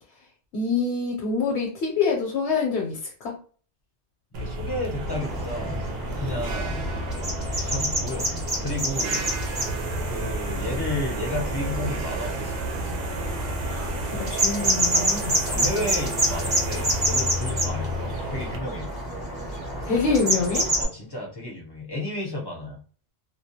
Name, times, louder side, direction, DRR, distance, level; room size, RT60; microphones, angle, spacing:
voice 1, 0.5-3.0 13.7-15.6 19.8-20.7, left 4 dB, 75° left, -1 dB, 0.9 m, -26 dB
sound 1, 4.3-18.6, right 1 dB, 70° right, 0.8 m, -31 dB
voice 2, 4.4-5.9 6.2-6.9 7.6-8.3 8.6-9.3 10.1-12.5 14.9-15.2 15.4-18.9 20.7-22.8, left 1 dB, 30° left, -3 dB, 0.5 m, -32 dB
sound 2, 5.1-20.8, right 1 dB, 25° right, 0.8 m, -28 dB
2.3 x 2.1 x 2.7 m, 0.42 s
omnidirectional pair, 1.1 m